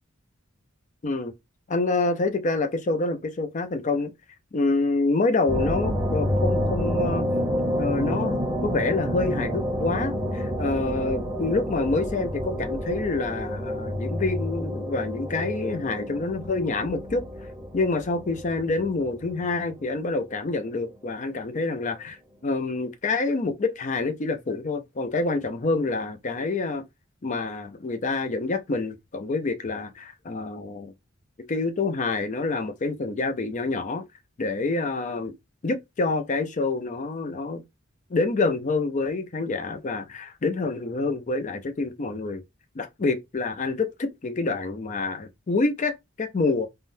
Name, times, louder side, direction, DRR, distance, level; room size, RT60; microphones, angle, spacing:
voice 1, 1.7-4.1 4.5-7.2 7.8-17.2 17.7-22.2 22.4-26.8 27.2-30.9 31.5-34.0 34.4-35.3 35.6-37.6 38.1-42.4 42.7-46.7, left 3 dB, 35° left, 0.5 m, -27 dB
sound 1, 5.5-19.9, equal, 15° right, 0.6 m, -29 dB
3.6 x 2.1 x 2.6 m
head